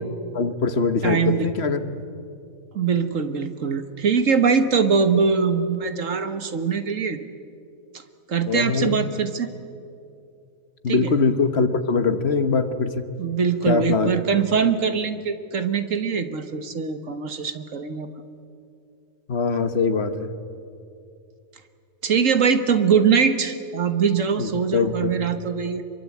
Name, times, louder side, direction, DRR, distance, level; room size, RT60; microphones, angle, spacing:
voice 1, 0.3-1.8 8.5-9.0 10.8-13.0 13.7-14.1 19.3-20.3 24.4-25.1, left 4 dB, 50° left, 10 dB, 1.4 m, -22 dB
voice 2, 1.0-1.5 2.7-7.2 8.3-9.5 10.9-11.1 13.2-18.1 22.0-25.8, right 6 dB, 65° right, 9 dB, 1.7 m, -22 dB
26.0 x 23.5 x 8.5 m, 2.5 s
omnidirectional pair, 1.5 m